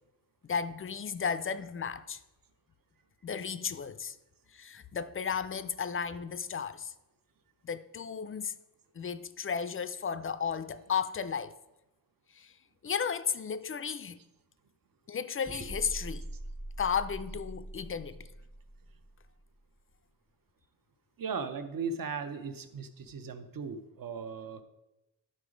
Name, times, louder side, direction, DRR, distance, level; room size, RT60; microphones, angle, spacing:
voice 1, 0.4-2.2 3.2-4.2 4.5-6.9 7.6-8.5 9.0-11.5 12.4-12.5 12.8-14.2 15.1-16.3 16.8-18.3, left 6 dB, 35° left, 0.4 m, -34 dB
sound 1, 15.4-19.6, right 1 dB, 20° right, 0.7 m, -42 dB
voice 2, 21.2-24.6, right 5 dB, 55° right, 0.8 m, -37 dB
11.5 x 3.9 x 5.0 m
wide cardioid pair, 120°, 40 cm